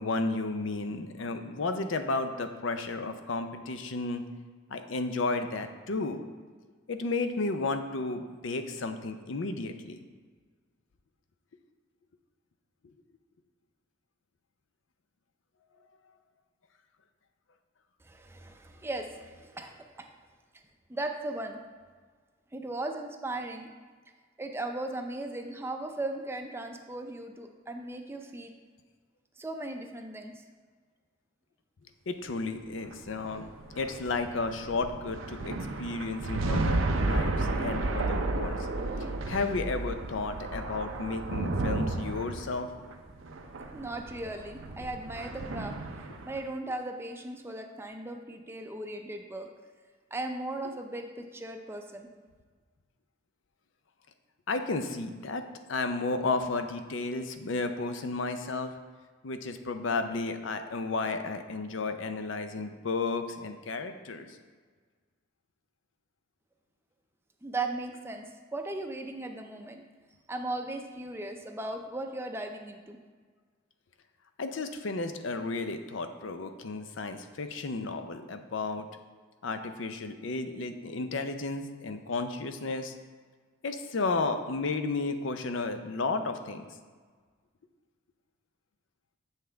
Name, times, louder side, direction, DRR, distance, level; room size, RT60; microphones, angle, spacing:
voice 1, 0.0-4.3 4.7-6.2 6.9-10.0 32.1-33.5 33.7-38.7 39.3-42.7 54.5-55.4 55.7-58.7 59.2-64.3 74.4-78.9 79.4-82.9 83.6-86.7, left 3 dB, 75° left, 8 dB, 0.5 m, -33 dB
voice 2, 18.0-20.1 20.9-21.6 22.5-23.7 24.4-28.5 29.4-30.4 43.7-45.7 46.2-49.5 50.1-52.1 67.4-69.8 70.3-73.0, right 2 dB, 10° right, 4 dB, 0.5 m, -37 dB
sound 1, 32.8-46.4, right 2 dB, 85° right, 0.6 m, -32 dB
7.5 x 5.6 x 3.4 m, 1.5 s
head